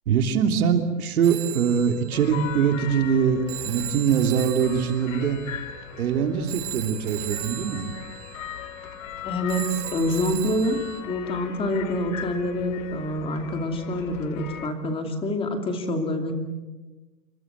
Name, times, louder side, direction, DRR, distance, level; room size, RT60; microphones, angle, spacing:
voice 1, 0.1-5.4 6.0-7.9, right 7 dB, 65° right, 5 dB, 3.1 m, -23 dB
Telephone, 1.2-11.0, right 14 dB, 35° right, 3.0 m, -38 dB
sound 1, 2.1-14.7, left 9 dB, 50° left, 2.3 m, -39 dB
voice 2, 9.2-16.3, left 1 dB, 10° left, 5 dB, 2.5 m, -27 dB
28.5 x 24.5 x 8.1 m, 1.2 s
hypercardioid pair, 160°, 47 cm